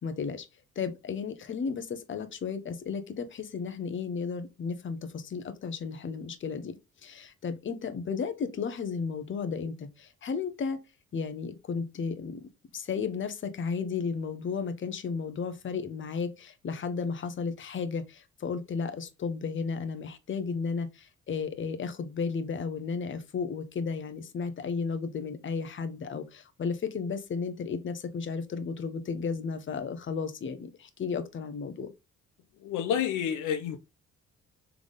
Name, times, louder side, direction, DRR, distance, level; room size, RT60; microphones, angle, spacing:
voice 1, 0.0-0.5 0.8-6.8 7.0-10.8 11.1-12.5 12.7-31.9, left 5 dB, 40° left, 0.8 m, -34 dB
voice 2, 32.6-33.8, left 9 dB, 80° left, 0.7 m, -29 dB
3.5 x 3.5 x 3.8 m
cardioid pair, 90°, 30 cm